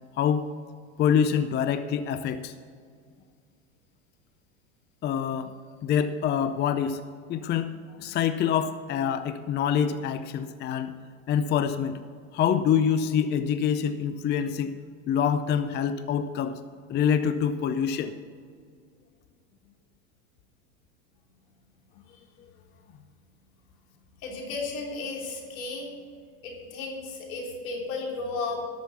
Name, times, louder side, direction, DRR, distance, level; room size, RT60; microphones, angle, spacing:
voice 1, 0.2-0.5 1.0-2.5 5.0-7.0 7.3-10.9 11.3-12.0 12.3-14.7 15.1-16.6 16.9-18.1, left 8 dB, 25° left, 11 dB, 0.5 m, -26 dB
voice 2, 24.2-25.9 26.4-28.6, left 3 dB, 75° left, -1 dB, 3.4 m, -34 dB
12.5 x 6.3 x 7.0 m, 2.1 s
supercardioid pair, 110°, 42 cm